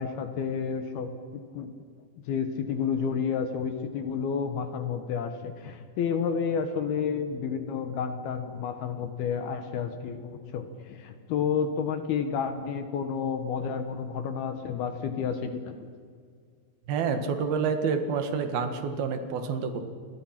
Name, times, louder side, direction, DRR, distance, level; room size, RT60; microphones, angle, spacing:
voice 1, 0.0-1.7 2.2-15.9, left 6 dB, 70° left, 8 dB, 2.9 m, -30 dB
voice 2, 16.9-19.9, right 5 dB, 65° right, 7 dB, 3.3 m, -28 dB
29.5 x 21.0 x 5.9 m, 2.1 s
omnidirectional pair, 5.1 m